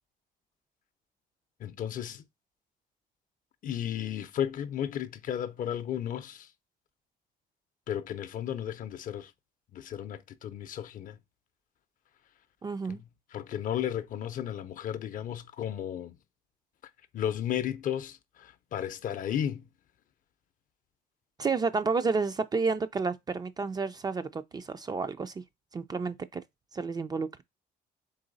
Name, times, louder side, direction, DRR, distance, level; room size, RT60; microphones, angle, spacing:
voice 1, 1.6-2.3 3.6-6.5 7.9-9.3 9.7-11.2 12.9-16.2 17.1-19.7, left 10 dB, 50° left, 0.5 m, -34 dB
voice 2, 12.6-13.0 21.4-25.4 25.7-26.4 26.7-27.4, right 4 dB, 25° right, 0.4 m, -30 dB
3.9 x 3.0 x 3.9 m
cardioid pair, 110°, 17 cm